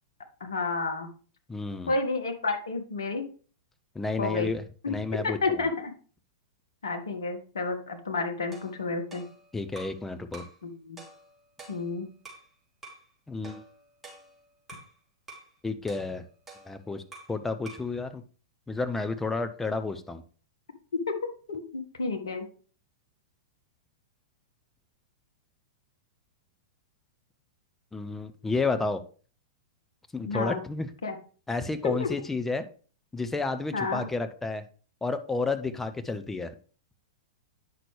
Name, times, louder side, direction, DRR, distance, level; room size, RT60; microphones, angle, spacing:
voice 1, 0.4-1.1 1.9-3.2 4.2-4.5 4.8-5.0 5.2-5.9 6.8-9.2 10.6-11.0 11.7-12.1 21.1-21.2 21.5-22.4 30.2-30.6 31.0-31.2 32.0-32.1 33.7-34.1, left 3 dB, 70° left, 5 dB, 1.6 m, -30 dB
voice 2, 1.5-1.9 3.9-5.7 9.5-10.4 13.3-13.7 15.6-16.2 16.7-17.0 17.3-18.2 18.7-20.2 27.9-29.0 30.1-30.9 31.5-32.6 33.1-34.6 35.0-36.5, left 3 dB, 10° left, 9 dB, 0.7 m, -31 dB
sound 1, 8.5-10.0 10.3-10.6 11.0-12.5 12.8-13.1 13.4-14.9 15.3-15.5 15.9-17.4 17.6-17.9, right 2 dB, 10° right, 3.0 m, -48 dB
9.4 x 5.9 x 3.3 m, 0.39 s
figure-of-eight pair, 100°, 3 cm